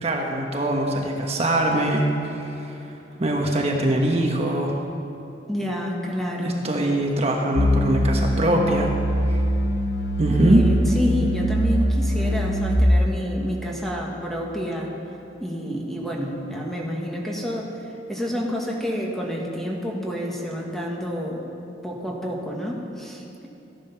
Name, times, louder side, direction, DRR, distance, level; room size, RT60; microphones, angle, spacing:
voice 1, 0.0-2.8 3.2-4.8 6.4-8.9 9.3-9.4 10.2-10.6, right 1 dB, 35° right, 0 dB, 1.2 m, -22 dB
voice 2, 5.5-6.6 10.3-14.9 15.4-17.7 18.1-21.4 21.8-23.5, equal, ahead, -2 dB, 1.6 m, -28 dB
sound 1, 7.6-12.8, equal, 70° left, 0.9 m, -23 dB
14.5 x 11.0 x 5.8 m, 3.0 s
head